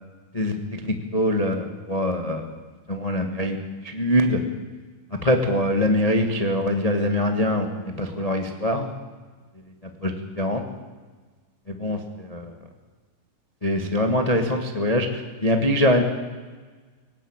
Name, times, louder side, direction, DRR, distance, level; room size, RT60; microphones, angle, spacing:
voice 1, 0.3-2.5 2.9-3.6 3.8-4.4 5.2-8.9 10.0-10.6 11.7-12.5 13.6-16.0, left 1 dB, 90° left, 5 dB, 0.3 m, -23 dB
19.5 x 17.5 x 8.8 m, 1.4 s
omnidirectional pair, 3.7 m